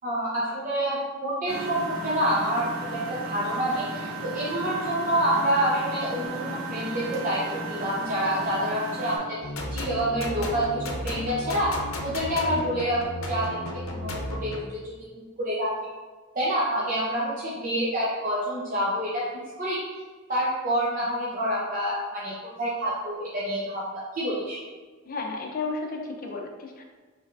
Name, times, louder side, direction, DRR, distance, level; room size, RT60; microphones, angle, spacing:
voice 1, 0.0-13.5 13.7-14.9 15.4-15.7 16.3-19.8 20.3-24.6, right 1 dB, 40° right, -7 dB, 0.7 m, -27 dB
Engine, 1.5-9.2, right 2 dB, 85° right, 1.2 m, -34 dB
sound 1, 9.4-14.6, left 1 dB, 80° left, 0.7 m, -33 dB
voice 2, 25.1-26.8, left 3 dB, 45° left, 1 dB, 0.6 m, -33 dB
5.5 x 3.3 x 2.5 m, 1.4 s
head